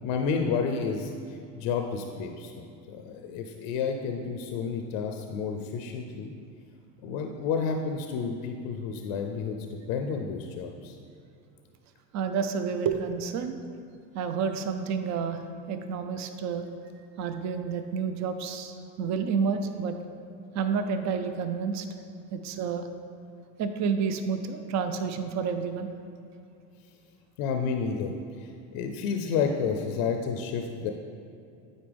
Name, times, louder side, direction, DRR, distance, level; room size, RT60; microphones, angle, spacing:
voice 1, 0.0-2.5 2.9-6.3 7.0-9.6 9.9-11.0 27.4-30.9, left 5 dB, 75° left, 4 dB, 0.6 m, -30 dB
voice 2, 12.1-13.6 14.1-15.4 15.7-16.7 17.2-19.9 20.5-21.9 22.3-22.9 23.6-25.9, right 6 dB, 45° right, 8 dB, 0.6 m, -29 dB
8.9 x 4.2 x 3.4 m, 2.5 s
supercardioid pair, 95°, 39 cm